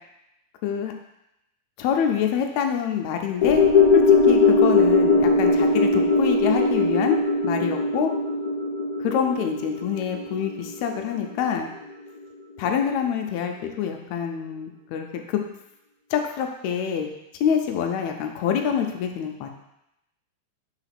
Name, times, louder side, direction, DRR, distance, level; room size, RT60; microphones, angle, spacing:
voice 1, 0.6-0.9 1.8-3.6 3.9-7.2 7.4-8.1 9.0-11.7 12.6-15.4 16.1-17.1 17.4-19.5, left 8 dB, 75° left, 4 dB, 1.8 m, -26 dB
sound 1, 3.4-11.8 12.2-12.3, left 3 dB, 45° left, 1.5 m, -20 dB
5.0 x 4.3 x 5.8 m, 0.86 s
omnidirectional pair, 3.5 m